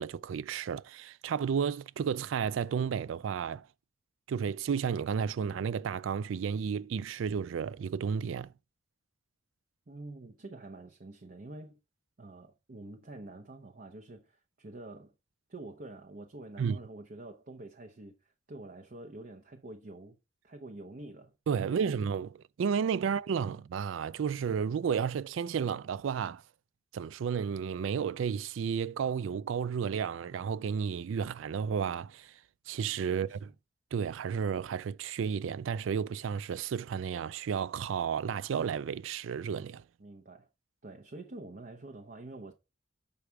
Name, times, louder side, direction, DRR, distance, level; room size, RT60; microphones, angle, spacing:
voice 1, 0.0-3.7 4.3-8.5 16.6-16.8 21.5-22.3 22.6-26.4 26.9-32.4 32.7-33.4 33.9-39.8, right 7 dB, 85° right, 0.4 m, -32 dB
voice 2, 9.9-11.8 12.2-15.1 15.5-20.2 20.4-22.0 23.0-23.2 33.1-33.5 40.0-40.5 40.8-42.5, right 2 dB, 50° right, 0.8 m, -47 dB
6.9 x 5.0 x 4.6 m
head